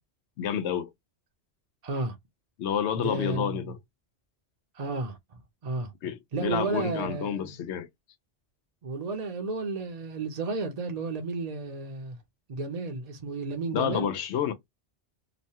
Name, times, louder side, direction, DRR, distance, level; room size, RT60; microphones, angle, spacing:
voice 1, 0.4-0.9 2.6-3.8 6.0-7.9 13.7-14.5, left 8 dB, 80° left, 0.9 m, -29 dB
voice 2, 1.8-2.2 3.0-3.7 4.7-5.2 5.6-5.9 6.3-7.4 8.8-12.2 12.5-14.1, right 3 dB, 45° right, 0.6 m, -32 dB
3.0 x 2.2 x 2.7 m
omnidirectional pair, 1.2 m